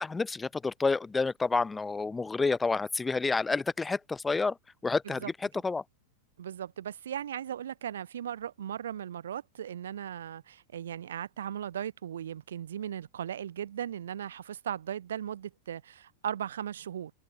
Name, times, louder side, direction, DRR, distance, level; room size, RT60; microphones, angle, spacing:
voice 1, 0.0-4.6 4.8-5.2 5.6-5.8, left 4 dB, 10° left, 1.0 m, -29 dB
voice 2, 6.4-17.1, right 9 dB, 65° right, 1.2 m, -37 dB
figure-of-eight pair, 90°, 0 cm